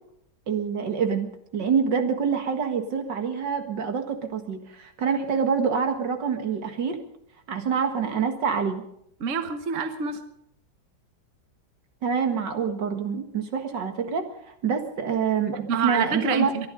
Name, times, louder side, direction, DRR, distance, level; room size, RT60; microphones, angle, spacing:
voice 1, 0.5-7.0 7.5-8.8 12.0-14.2 14.6-16.5, right 6 dB, 80° right, 6 dB, 2.4 m, -26 dB
voice 2, 9.2-10.2 15.7-16.7, right 6 dB, 45° right, 8 dB, 1.5 m, -27 dB
23.0 x 11.5 x 5.3 m, 0.73 s
omnidirectional pair, 1.9 m